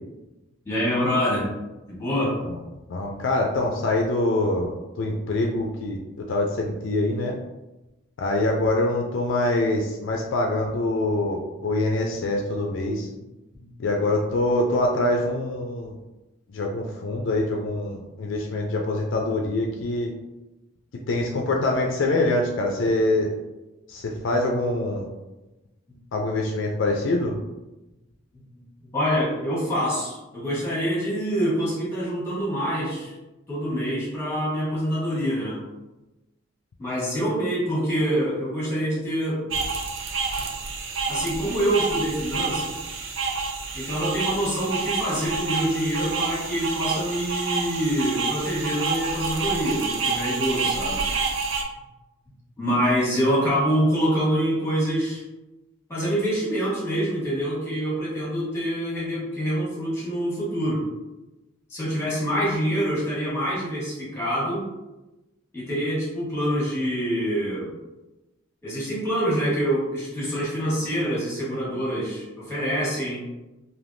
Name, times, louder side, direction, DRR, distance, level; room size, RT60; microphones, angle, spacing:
voice 1, 0.6-1.5 1.9-2.4 13.5-13.6 28.9-33.1 33.5-35.6 36.8-39.4 41.1-42.8 43.7-51.0 52.6-55.2 55.9-60.8 61.7-64.7 65.5-67.7 68.6-73.2, equal, 15° left, -7 dB, 1.2 m, -25 dB
voice 2, 2.9-6.0 6.3-7.4 8.2-13.1 13.8-15.9 16.5-20.1 21.1-23.3 23.9-25.1 26.1-27.4, left 2 dB, 65° left, 1 dB, 0.4 m, -24 dB
sound 1, 39.5-51.6, right 4 dB, 75° right, 0.5 m, -28 dB
3.4 x 2.7 x 2.6 m, 1.0 s
head